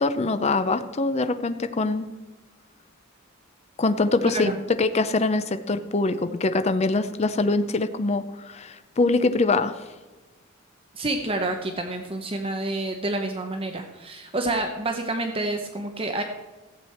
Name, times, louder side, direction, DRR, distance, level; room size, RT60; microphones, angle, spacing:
voice 1, 0.0-2.1 3.8-4.5 4.8-9.8, left 3 dB, 30° left, 10 dB, 0.5 m, -23 dB
voice 2, 10.9-16.2, right 2 dB, 25° right, 4 dB, 0.7 m, -28 dB
14.5 x 8.1 x 4.4 m, 1.2 s
head